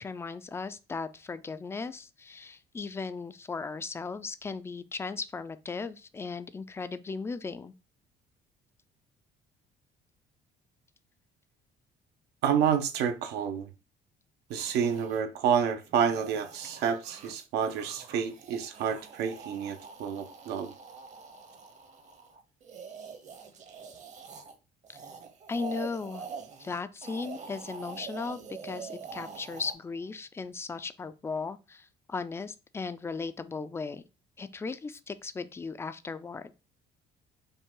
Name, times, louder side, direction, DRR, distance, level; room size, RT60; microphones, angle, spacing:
voice 1, 0.0-7.7 25.5-26.3 26.6-34.0 34.4-36.5, left 4 dB, 15° left, 0.3 m, -37 dB
voice 2, 12.4-13.7 14.5-20.7, right 7 dB, 80° right, 0.7 m, -29 dB
sound 1, 14.5-15.2 15.8-24.6 24.8-29.7, right 5 dB, 45° right, 0.8 m, -45 dB
5.3 x 2.2 x 3.7 m
cardioid pair, 110°, 17 cm